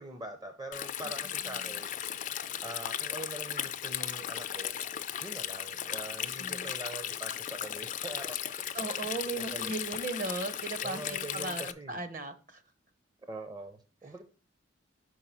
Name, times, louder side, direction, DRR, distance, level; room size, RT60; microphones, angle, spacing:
voice 1, 0.0-1.9 2.6-4.8 5.2-8.4 9.4-9.7 10.8-12.0 13.3-14.2, right 2 dB, 20° right, 6 dB, 0.6 m, -43 dB
Stream, 0.7-11.7, left 10 dB, 40° left, 0.4 m, -36 dB
voice 2, 1.0-1.7 6.4-6.7 8.7-12.6, right 3 dB, 45° right, 10 dB, 0.9 m, -37 dB
5.8 x 4.7 x 5.6 m, 0.36 s
head